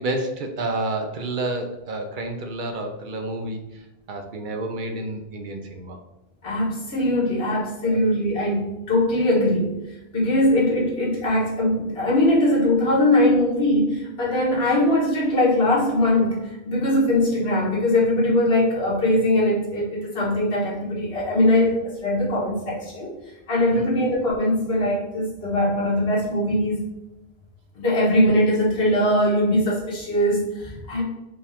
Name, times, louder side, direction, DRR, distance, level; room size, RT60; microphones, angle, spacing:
voice 1, 0.0-6.0 7.8-8.0 23.7-24.0, right 2 dB, 60° right, 4 dB, 0.7 m, -30 dB
voice 2, 6.4-9.8 10.1-23.2 23.5-26.9 27.7-31.0, left 1 dB, 75° left, -5 dB, 1.5 m, -21 dB
5.1 x 2.4 x 3.4 m, 0.95 s
omnidirectional pair, 1.0 m